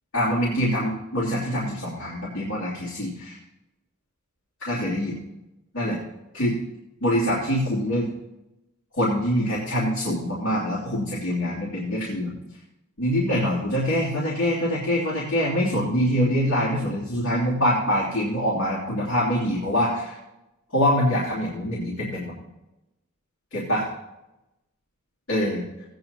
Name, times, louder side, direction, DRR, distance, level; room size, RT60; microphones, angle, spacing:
voice 1, 0.1-3.4 4.6-5.2 5.7-6.0 6.3-6.5 7.0-8.1 9.0-12.3 13.0-20.2 20.7-22.4 23.5-23.9 25.3-25.6, equal, 65° left, -8 dB, 2.9 m, -24 dB
17.0 x 9.2 x 3.0 m, 0.95 s
head